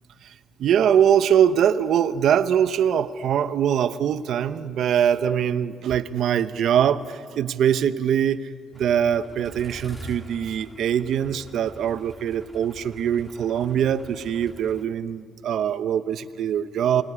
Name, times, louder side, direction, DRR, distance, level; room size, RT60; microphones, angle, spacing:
voice 1, 0.6-8.5 8.8-17.0, right 9 dB, 70° right, 11 dB, 0.9 m, -22 dB
sound 1, 8.7-14.8, right 1 dB, ahead, 3.2 m, -44 dB
26.0 x 19.5 x 9.7 m, 2.3 s
cardioid pair, 90°, 0 cm